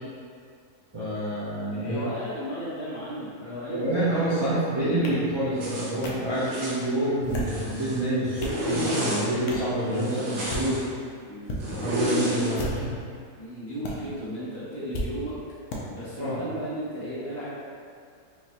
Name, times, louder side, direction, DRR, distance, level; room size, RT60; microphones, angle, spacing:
voice 1, 0.9-2.0 3.7-10.9 11.7-12.9 16.2-16.4, right 1 dB, 35° right, -12 dB, 0.4 m, -27 dB
voice 2, 1.8-3.9 6.4-6.7 10.0-10.4 11.3-12.0 13.4-15.4 15.9-17.5, equal, 50° left, -10 dB, 1.1 m, -35 dB
sound 1, 5.0-5.1 6.0-6.1 7.1-7.6 8.1-8.6 9.5-9.7 10.3-10.7 11.4-11.6 12.5-13.0 13.8-13.9 14.9-15.1 15.7-15.8, left 1 dB, 75° left, 1.1 m, -33 dB
Zipper (clothing), 5.6-5.9 6.4-6.8 7.3-8.0 8.3-9.3 9.9-10.8 11.6-12.6, equal, 90° right, 1.4 m, -30 dB
4.9 x 2.2 x 2.9 m, 2.2 s
omnidirectional pair, 1.7 m